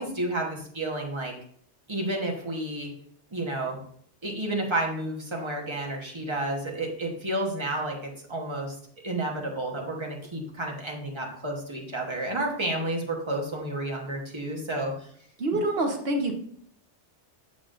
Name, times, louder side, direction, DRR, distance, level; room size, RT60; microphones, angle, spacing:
voice 1, 0.0-1.3 1.9-2.9 3.3-3.8 4.2-8.8 9.0-15.1, right 1 dB, 25° right, 0 dB, 1.2 m, -31 dB
voice 2, 15.4-16.3, right 1 dB, 60° right, 3 dB, 1.3 m, -26 dB
7.1 x 7.0 x 2.5 m, 0.62 s
omnidirectional pair, 1.2 m